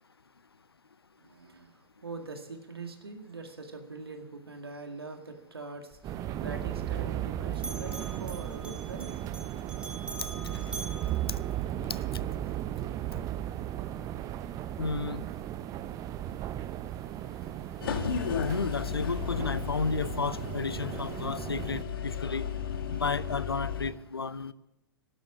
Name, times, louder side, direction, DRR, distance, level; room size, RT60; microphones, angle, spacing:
voice 1, 1.2-9.2, right 3 dB, 85° right, 5 dB, 2.0 m, -43 dB
Bell, 5.9-7.3 7.5-12.0, right 2 dB, 10° right, 1.9 m, -45 dB
sound 1, 6.0-21.8, right 12 dB, 30° right, 0.6 m, -36 dB
voice 2, 14.8-15.2 18.3-22.5 22.8-24.5, left 4 dB, 90° left, 18 dB, 0.7 m, -32 dB
sound 2, 17.8-23.9, left 7 dB, 65° left, 2.0 m, -34 dB
12.5 x 12.0 x 7.4 m, 0.93 s
figure-of-eight pair, 105°, 12 cm